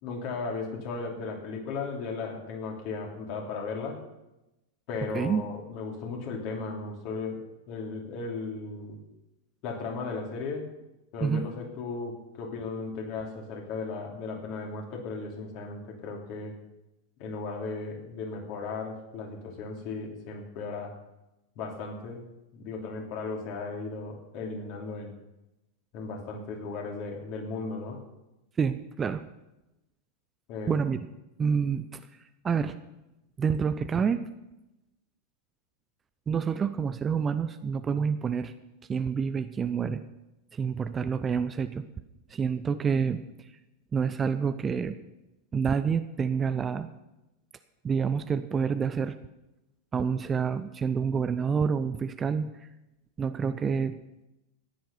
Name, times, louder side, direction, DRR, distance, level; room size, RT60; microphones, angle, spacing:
voice 1, 0.0-4.0 4.9-9.0 9.6-10.7 11.1-16.6 17.2-20.9 21.5-25.1 25.9-28.0 30.5-30.8, left 4 dB, 45° left, 0 dB, 3.2 m, -36 dB
voice 2, 28.6-29.2 30.7-31.0 31.4-32.0 32.4-32.7 33.4-34.2 36.3-38.5 38.9-40.0 40.5-41.8 42.3-43.2 43.9-44.9 45.5-46.9 47.8-49.2 49.9-52.5 53.2-54.0, right 6 dB, 20° right, 11 dB, 0.6 m, -28 dB
15.0 x 10.5 x 5.5 m, 0.95 s
figure-of-eight pair, 90°, 0 cm